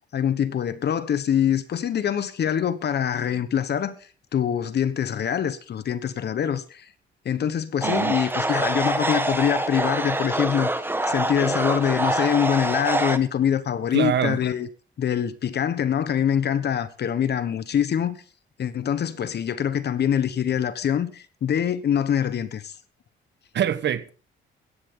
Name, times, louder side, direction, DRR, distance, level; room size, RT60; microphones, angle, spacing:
voice 1, 0.1-4.0 4.3-6.9 7.2-10.7 11.1-14.7 15.0-18.2 18.6-22.7, left 9 dB, 55° left, 1.2 m, -24 dB
sound 1, 7.8-13.2, right 1 dB, 10° right, 1.4 m, -25 dB
voice 2, 7.8-8.2 13.9-14.4 23.5-24.1, right 9 dB, 60° right, 1.3 m, -24 dB
16.5 x 13.5 x 3.8 m
cardioid pair, 90°, 20 cm